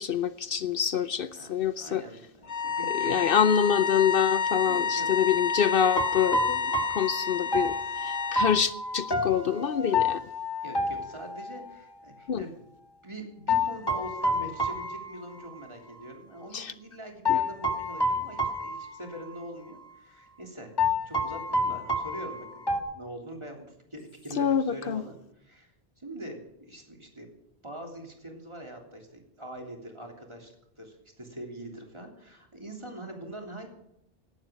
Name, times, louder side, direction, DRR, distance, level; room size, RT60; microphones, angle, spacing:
voice 1, 0.0-2.0 2.9-7.8 8.0-10.2 12.3-12.4 16.5-16.7 17.3-17.4 24.4-25.0, left 8 dB, 65° left, 0.8 m, -26 dB
voice 2, 1.8-3.3 4.6-5.1 10.6-12.6 13.0-20.7 21.0-25.7 26.0-27.3 27.6-33.7, right 1 dB, 30° right, 3.4 m, -43 dB
sound 1, 2.5-8.6, left 5 dB, 80° left, 1.7 m, -29 dB
sound 2, 5.9-11.7 13.5-15.7 16.0-16.1 17.2-19.5 19.8-19.9 20.8-22.8, left 2 dB, 25° left, 1.6 m, -29 dB
17.5 x 12.0 x 5.1 m
omnidirectional pair, 1.0 m